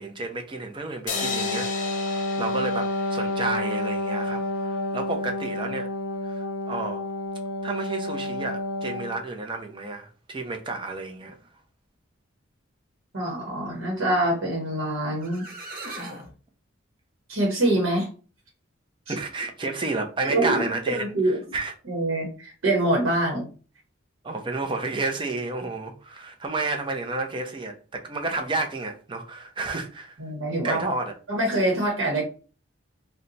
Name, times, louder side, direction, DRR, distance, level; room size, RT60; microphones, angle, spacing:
voice 1, 0.0-5.9 6.2-7.0 7.6-11.4 19.1-21.0 21.2-21.7 24.2-30.2 30.6-31.1, right 3 dB, 25° right, 0.5 m, -31 dB
Wind instrument woodwind instrument, 1.1-9.3, left 1 dB, 80° left, 0.5 m, -30 dB
sound 1, 1.1-4.4, left 5 dB, 40° left, 0.6 m, -35 dB
voice 2, 13.1-15.4 17.3-18.1 19.1-19.2 20.2-21.4 21.9-23.5 30.2-30.9 31.3-32.2, right 1 dB, 75° right, 1.0 m, -25 dB
sound 2, 14.9-15.0 15.2-16.3, right 2 dB, 45° right, 0.8 m, -38 dB
2.8 x 2.2 x 3.8 m
head